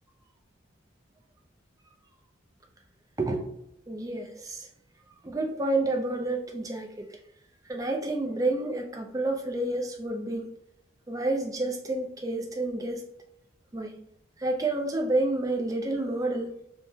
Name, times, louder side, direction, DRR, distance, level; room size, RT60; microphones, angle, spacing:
voice 1, 3.9-4.7 5.2-7.2 7.7-10.5 11.1-13.1 13.7-14.0 14.4-16.5, right 2 dB, 15° right, 2 dB, 0.4 m, -29 dB
3.4 x 2.1 x 2.7 m, 0.78 s
head